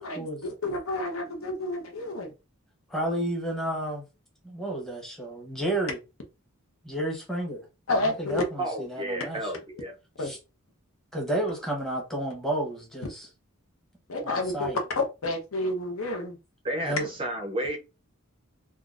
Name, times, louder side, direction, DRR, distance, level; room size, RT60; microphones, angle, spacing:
voice 1, 0.0-2.3 7.9-8.4 10.2-10.3 14.1-14.7 15.0-16.4, left 2 dB, 70° left, 0.8 m, -30 dB
voice 2, 2.9-4.0 4.4-6.0 6.8-7.6 8.0-9.5 10.2-10.4 11.1-13.3 14.2-14.8 16.8-17.1, right 1 dB, ahead, 0.9 m, -31 dB
voice 3, 8.6-9.9 16.6-17.8, right 1 dB, 25° right, 0.5 m, -32 dB
3.6 x 2.3 x 2.4 m
head